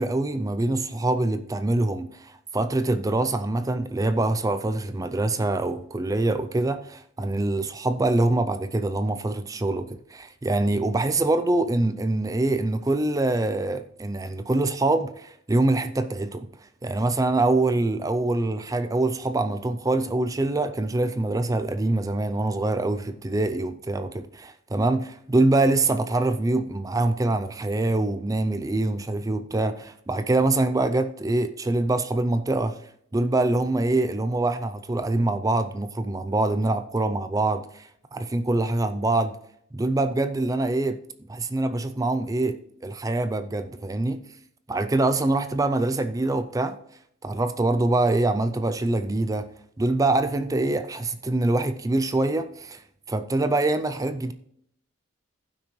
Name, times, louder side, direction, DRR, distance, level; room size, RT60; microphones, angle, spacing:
voice 1, 0.0-16.5 16.8-32.8 33.1-39.4 39.7-41.0 41.3-42.6 42.8-44.2 44.7-46.8 47.2-49.5 49.8-52.8 53.1-54.3, right 2 dB, 15° right, 0.4 m, -24 dB
15.5 x 6.1 x 3.1 m
head